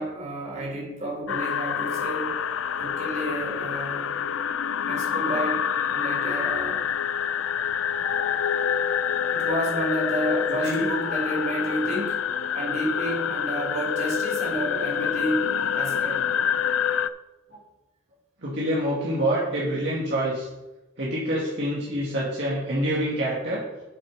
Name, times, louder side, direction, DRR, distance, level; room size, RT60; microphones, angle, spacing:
voice 1, 0.0-2.3 2.8-4.1 4.8-5.6 5.9-6.8 9.3-12.2 12.5-16.2, right 1 dB, 35° right, -3 dB, 3.7 m, -30 dB
sound 1, 1.3-17.1, left 8 dB, 75° left, 0.4 m, -27 dB
voice 2, 18.4-20.5 21.0-23.6, equal, 55° right, -7 dB, 2.4 m, -26 dB
8.5 x 6.9 x 5.6 m, 1.1 s
head